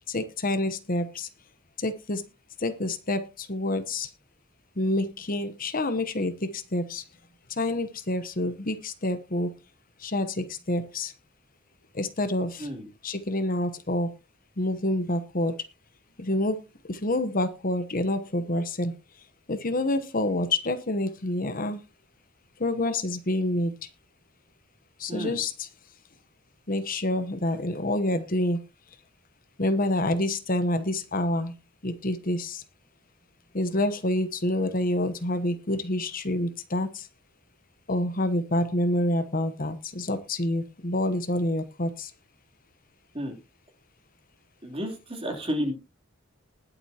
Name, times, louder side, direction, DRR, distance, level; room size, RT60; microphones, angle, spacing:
voice 1, 0.1-1.3 1.8-2.2 2.6-4.1 4.8-7.0 7.5-9.5 10.0-11.1 11.9-12.7 13.0-14.1 14.6-15.5 16.2-16.6 16.9-18.9 19.5-21.8 22.6-23.7 25.0-25.7 26.7-28.6 29.6-31.5 31.8-32.6 33.5-37.1 37.9-42.1, left 1 dB, 45° left, 10 dB, 1.0 m, -27 dB
voice 2, 25.1-25.4 43.1-43.4 44.6-45.7, equal, 30° right, 2 dB, 3.2 m, -31 dB
20.5 x 8.0 x 2.9 m, 0.29 s
head